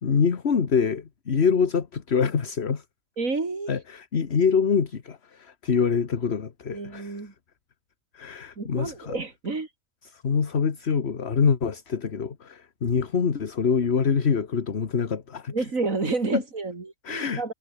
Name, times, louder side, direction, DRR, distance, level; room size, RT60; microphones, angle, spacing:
voice 1, 0.0-2.8 3.7-7.2 8.1-9.1 10.1-15.5 16.3-16.4 17.0-17.4, left 6 dB, 50° left, 1.6 m, -25 dB
voice 2, 3.2-3.7 6.7-7.3 8.6-9.7 15.5-17.5, right 3 dB, 75° right, 3.6 m, -30 dB
omnidirectional pair, 1.4 m